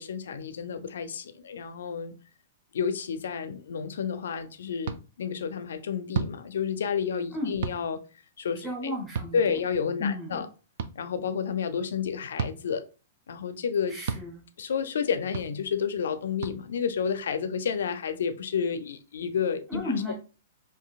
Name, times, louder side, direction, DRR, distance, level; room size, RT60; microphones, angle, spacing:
voice 1, 0.0-2.1 2.7-8.0 8.4-8.9 9.3-10.5 11.0-12.8 13.3-14.0 14.6-20.1, left 6 dB, 85° left, 0.4 m, -30 dB
sound 1, 4.8-5.0 6.1-6.3 7.6-7.8 9.1-9.3 10.8-10.9 12.4-12.6 14.1-14.2 15.3-15.5 16.4-16.6, right 6 dB, 50° right, 0.3 m, -30 dB
voice 2, 8.6-9.6 10.0-10.4 13.9-14.4 19.7-20.1, left 2 dB, 5° right, 0.7 m, -33 dB
3.9 x 2.6 x 2.3 m
hypercardioid pair, 170°, 0 cm